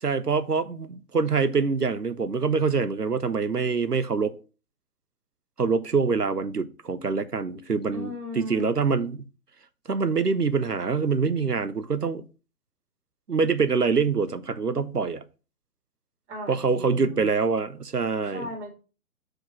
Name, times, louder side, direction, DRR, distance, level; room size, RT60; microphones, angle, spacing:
voice 1, 0.0-4.4 5.6-9.2 9.9-12.2 13.3-15.2 16.5-18.5, right 5 dB, 90° right, 0.9 m, -25 dB
voice 2, 7.9-8.7 16.3-17.2 18.3-18.7, left 2 dB, 45° right, 4.2 m, -37 dB
6.4 x 4.9 x 6.2 m
figure-of-eight pair, 125°, 45 cm